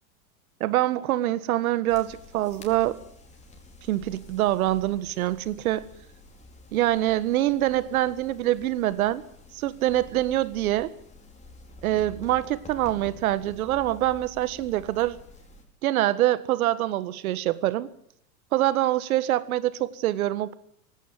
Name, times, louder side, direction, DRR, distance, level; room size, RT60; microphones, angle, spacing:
voice 1, 0.6-3.0 3.9-5.9 6.7-9.2 9.5-10.9 11.8-15.2 15.8-17.9 18.5-20.6, right 14 dB, 70° right, 1.7 m, -25 dB
sound 1, 1.9-15.6, left 1 dB, 15° left, 5.0 m, -49 dB
18.0 x 17.0 x 9.2 m
hypercardioid pair, 115°, 45 cm